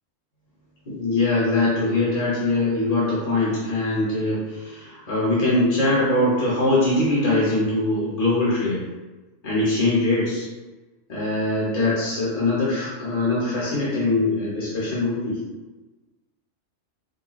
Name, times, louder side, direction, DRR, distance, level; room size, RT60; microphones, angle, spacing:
voice 1, 0.9-8.8 9.4-10.5 11.1-15.4, left 2 dB, 35° left, -7 dB, 1.0 m, -22 dB
4.8 x 2.2 x 3.0 m, 1.2 s
omnidirectional pair, 1.4 m